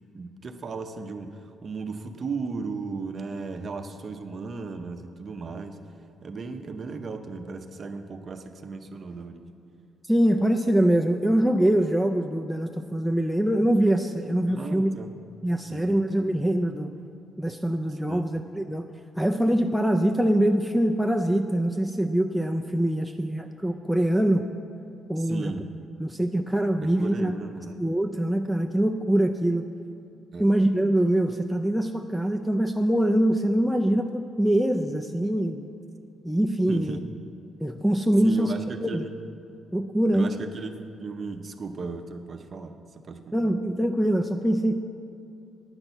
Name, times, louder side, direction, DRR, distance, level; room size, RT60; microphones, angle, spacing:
voice 1, 0.1-5.8 6.2-9.5 14.5-15.1 15.7-16.0 17.9-18.3 25.2-25.6 26.8-27.8 30.3-30.6 36.7-37.0 38.2-39.1 40.1-42.7 43.0-43.5, right 4 dB, 35° right, 7 dB, 0.7 m, -36 dB
voice 2, 10.1-14.9 15.4-16.9 17.4-18.9 19.2-24.4 25.1-25.5 26.0-27.3 27.8-29.7 30.4-35.7 36.2-37.0 37.6-38.5 38.8-39.0 39.7-40.4 43.3-44.8, right 1 dB, ahead, 6 dB, 0.3 m, -23 dB
9.7 x 6.0 x 8.0 m, 2.6 s
cardioid pair, 145°, 0 cm